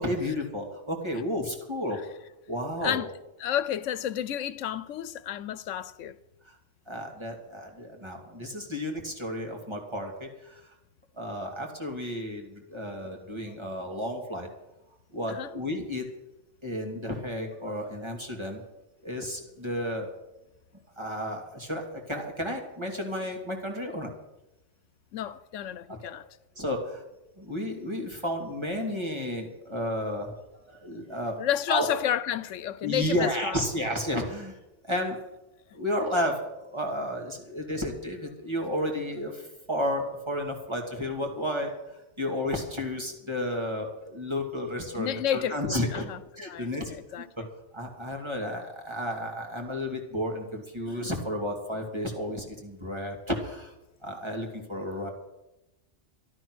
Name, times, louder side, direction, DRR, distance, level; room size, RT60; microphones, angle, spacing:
voice 1, 0.0-2.0 2.5-3.0 6.4-6.5 6.9-10.6 11.2-14.5 15.1-16.1 16.6-18.6 19.0-20.1 21.0-24.1 26.6-27.0 27.4-30.3 30.7-31.9 32.8-34.6 34.9-35.2 35.7-46.1 46.4-47.2 47.7-53.7 54.0-55.1, left 1 dB, 25° right, 2.6 m, -32 dB
voice 2, 3.4-6.2 15.3-15.5 25.1-26.3 31.4-33.6 44.9-47.5, left 10 dB, 90° left, 1.0 m, -31 dB
13.0 x 12.0 x 6.2 m
omnidirectional pair, 1.2 m